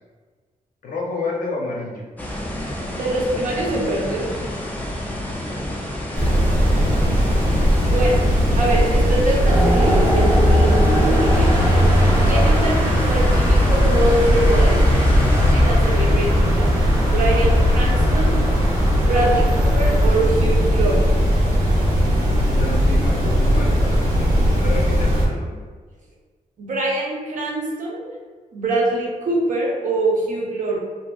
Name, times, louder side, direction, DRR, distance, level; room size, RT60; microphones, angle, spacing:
voice 1, 0.8-2.1 6.7-7.2 22.5-25.6, left 3 dB, 75° left, -1 dB, 0.6 m, -30 dB
sound 1, 2.2-15.5, left 1 dB, 10° left, 0.3 m, -30 dB
voice 2, 2.9-4.3 7.8-8.2 8.6-11.8 12.2-14.8 15.5-16.7 17.1-18.4 19.1-21.1 26.6-28.1 28.5-30.8, right 2 dB, 65° right, -3 dB, 0.7 m, -24 dB
sound 2, 6.1-25.3, equal, 90° right, 0.9 m, -18 dB
sound 3, 9.4-20.2, left 1 dB, 20° right, 0.7 m, -21 dB
2.8 x 2.6 x 2.2 m, 1.5 s
wide cardioid pair, 170°, 14 cm